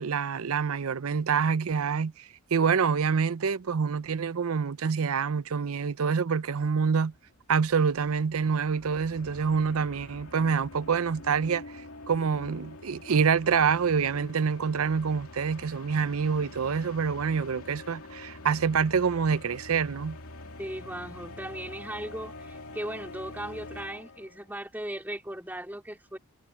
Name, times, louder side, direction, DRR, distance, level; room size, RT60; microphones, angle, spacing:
voice 1, 0.0-7.1 7.5-11.6 12.1-20.2, right 6 dB, 85° right, 0.6 m, -26 dB
sound 1, 7.1-24.5, left 2 dB, 80° left, 2.7 m, -46 dB
voice 2, 20.6-26.2, right 1 dB, 10° right, 2.6 m, -37 dB
head